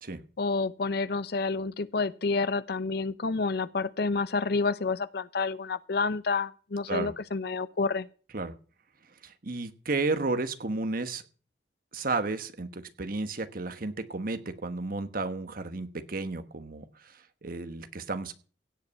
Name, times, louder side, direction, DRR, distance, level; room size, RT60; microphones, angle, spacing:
voice 1, 0.4-8.1, left 4 dB, 65° left, 0.7 m, -29 dB
voice 2, 9.2-11.2 11.9-17.1 17.4-18.3, right 3 dB, 55° right, 1.3 m, -32 dB
16.5 x 5.5 x 8.4 m
head